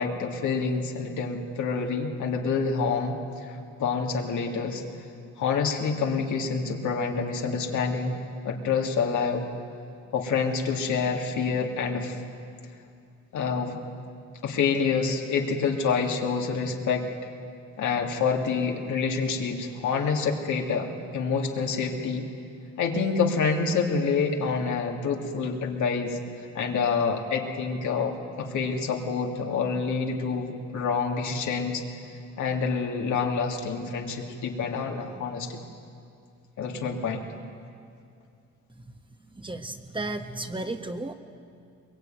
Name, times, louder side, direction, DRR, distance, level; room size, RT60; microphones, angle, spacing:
voice 1, 0.0-4.8 5.4-8.2 8.4-9.4 10.1-12.2 13.3-13.8 14.4-17.1 17.8-22.3 22.8-26.2 26.5-31.8 32.4-35.6 36.6-37.3, left 5 dB, 75° left, 1 dB, 3.2 m, -27 dB
voice 2, 39.4-41.1, right 2 dB, 15° right, 6 dB, 1.5 m, -33 dB
22.0 x 22.0 x 9.5 m, 2.4 s
cardioid pair, 90°, 30 cm